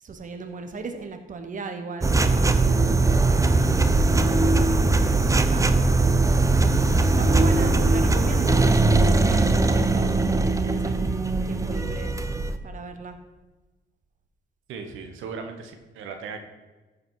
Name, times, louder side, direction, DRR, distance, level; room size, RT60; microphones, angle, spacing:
voice 1, 0.0-2.6 2.9-5.6 6.5-10.1 10.6-12.1 12.6-13.2, right 4 dB, 40° right, 7 dB, 1.1 m, -37 dB
sound 1, 2.0-12.6, right 3 dB, 15° right, 0.6 m, -20 dB
voice 2, 14.7-16.4, right 5 dB, 85° right, 6 dB, 1.2 m, -37 dB
14.5 x 5.1 x 4.7 m, 1.2 s
cardioid pair, 90°, 20 cm